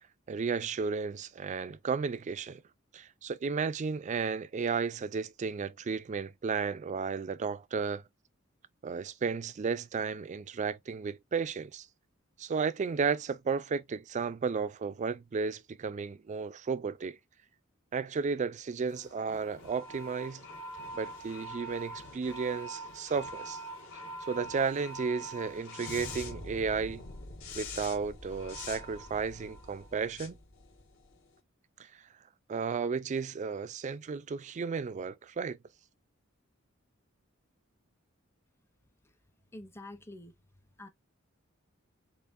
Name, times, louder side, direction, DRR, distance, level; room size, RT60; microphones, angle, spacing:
voice 1, 0.3-2.6 2.9-8.0 8.8-11.9 12.4-17.2 17.9-20.4 20.9-23.6 24.2-27.0 27.6-30.4 31.8-32.0 32.5-35.6, right 5 dB, 35° right, 0.3 m, -33 dB
sound 1, 18.9-31.3, left 1 dB, 70° left, 1.6 m, -44 dB
voice 2, 39.5-40.3 40.8-40.9, left 1 dB, 10° left, 0.6 m, -46 dB
6.8 x 2.5 x 2.4 m
head